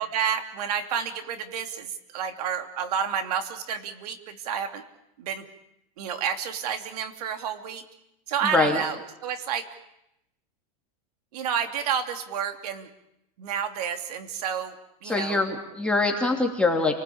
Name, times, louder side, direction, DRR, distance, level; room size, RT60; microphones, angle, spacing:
voice 1, 0.0-4.8 5.2-5.4 6.0-7.8 8.3-9.6 11.3-12.9 13.4-14.7 15.0-15.4, right 8 dB, 80° right, 7 dB, 2.9 m, -30 dB
voice 2, 8.4-8.8 15.0-17.0, left 3 dB, 5° left, 0 dB, 2.8 m, -24 dB
30.0 x 19.5 x 8.7 m, 0.86 s
supercardioid pair, 130°, 20 cm